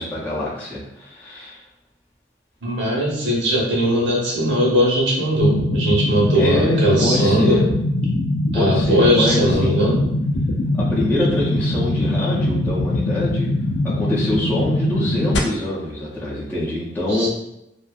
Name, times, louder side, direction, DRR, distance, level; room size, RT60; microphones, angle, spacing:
voice 1, 0.0-1.6 6.3-7.7 8.5-9.9 10.7-13.5 14.0-17.3, left 1 dB, 10° left, -8 dB, 0.5 m, -24 dB
voice 2, 2.6-7.6 8.5-10.0 17.1-17.3, equal, 85° right, -4 dB, 1.0 m, -19 dB
sound 1, 5.4-15.4, left 1 dB, 70° left, 0.4 m, -22 dB
2.5 x 2.4 x 2.3 m, 0.84 s
head